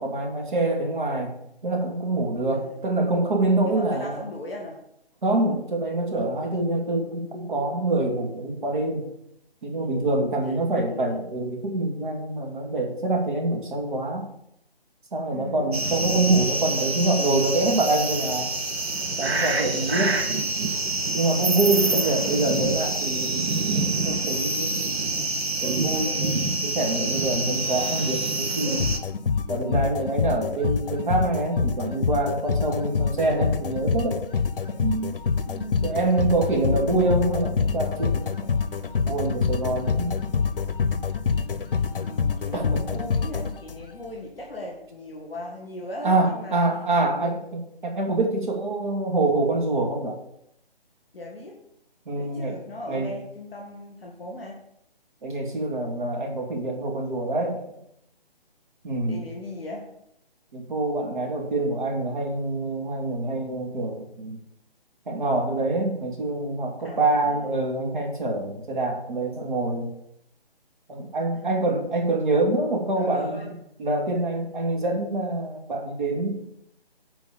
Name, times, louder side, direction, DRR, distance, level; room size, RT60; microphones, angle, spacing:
voice 1, 0.0-1.3 1.6-4.2 5.2-9.1 9.6-14.3 15.1-18.5 19.2-20.3 21.1-24.8 25.6-26.4 26.6-28.9 29.5-34.2 34.8-35.1 35.8-38.3 39.1-40.1 42.5-43.0 46.0-50.2 52.1-52.6 52.9-53.1 55.2-57.6 58.8-59.2 60.5-64.4 65.1-69.9 70.9-73.4 73.8-76.3, right 2 dB, 50° right, 1 dB, 2.7 m, -25 dB
voice 2, 3.6-4.8 10.4-11.0 15.3-15.8 21.7-22.1 30.5-30.7 35.5-36.1 41.9-46.6 47.2-47.3 51.1-51.6 52.1-54.6 59.1-59.9 66.8-67.5 72.9-73.6, left 1 dB, 5° right, -17 dB, 0.5 m, -38 dB
sound 1, 15.7-29.0, right 2 dB, 80° right, 1.5 m, -26 dB
sound 2, 28.8-44.1, left 5 dB, 60° left, 0.7 m, -26 dB
7.9 x 4.7 x 7.0 m, 0.76 s
figure-of-eight pair, 155°, 31 cm